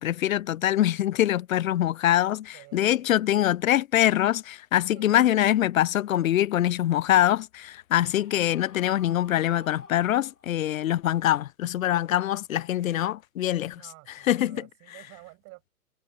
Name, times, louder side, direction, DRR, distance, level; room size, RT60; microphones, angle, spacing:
voice 1, 0.0-13.8 14.3-14.6, left 12 dB, 65° left, 0.7 m, -24 dB
voice 2, 2.5-3.2 4.9-5.2 13.7-15.7, right 25 dB, 35° right, 7.8 m, -50 dB
Screaming, 8.0-10.7, left 3 dB, 85° left, 4.5 m, -52 dB
hypercardioid pair, 125°, 44 cm